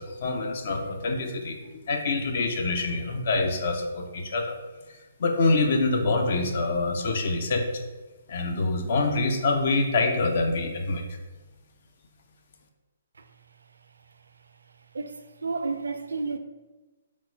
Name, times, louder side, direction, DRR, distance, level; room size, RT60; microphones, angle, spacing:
voice 1, 0.0-4.6 5.2-7.7 8.3-11.0, left 3 dB, 55° left, 0.6 m, -26 dB
voice 2, 14.9-16.4, right 4 dB, 75° right, 0.4 m, -31 dB
4.5 x 2.1 x 4.4 m
figure-of-eight pair, 135°, 0 cm